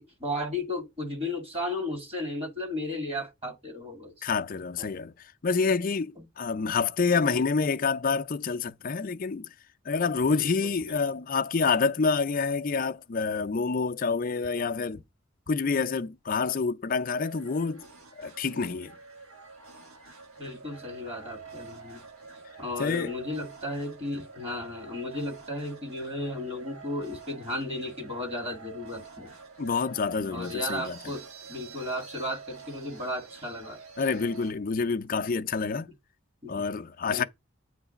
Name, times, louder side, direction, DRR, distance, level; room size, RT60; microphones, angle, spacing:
voice 1, 0.0-4.1 4.8-4.9 7.1-7.4 10.4-11.0 20.4-22.0 22.6-29.3 30.3-33.8 36.4-36.6 37.0-37.2, left 1 dB, 30° right, 1.7 m, -35 dB
voice 2, 4.2-5.1 5.4-9.5 9.9-15.0 15.5-17.9 18.2-18.9 22.8-23.1 29.6-31.0 34.0-35.9 36.5-37.2, left 4 dB, 40° left, 0.4 m, -27 dB
sound 1, 17.1-34.5, right 5 dB, 85° right, 1.4 m, -47 dB
8.0 x 3.3 x 5.0 m
head